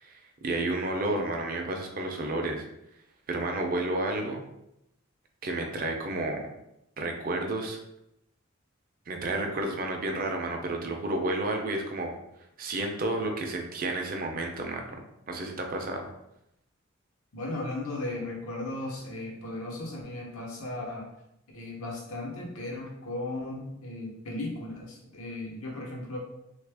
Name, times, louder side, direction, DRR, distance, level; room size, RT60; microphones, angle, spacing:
voice 1, 0.0-2.6 3.3-4.4 5.4-6.5 7.0-7.8 9.1-12.1 12.6-14.9 15.3-16.1, right 2 dB, 40° right, 3 dB, 0.5 m, -31 dB
voice 2, 17.3-21.1 21.5-26.2, left 2 dB, 90° left, -2 dB, 0.9 m, -36 dB
3.2 x 2.4 x 3.4 m, 0.83 s
head